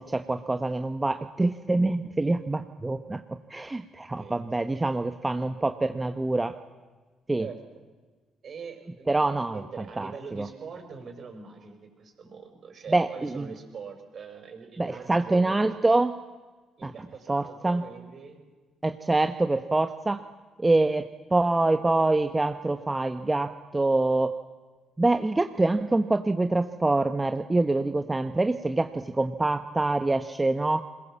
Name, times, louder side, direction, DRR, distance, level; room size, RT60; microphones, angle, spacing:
voice 1, 0.0-3.2 3.5-6.6 7.3-7.4 9.1-9.6 10.0-10.5 12.9-13.5 14.8-16.2 16.8-16.9 17.3-17.8 18.8-20.2 20.6-24.3 25.0-30.8, right 2 dB, 20° right, 7 dB, 1.0 m, -25 dB
voice 2, 4.2-4.9 7.4-7.6 8.4-15.7 16.8-18.4, right 5 dB, 55° right, 5 dB, 5.6 m, -43 dB
21.5 x 21.0 x 7.4 m, 1.3 s
supercardioid pair, 65°, 0 cm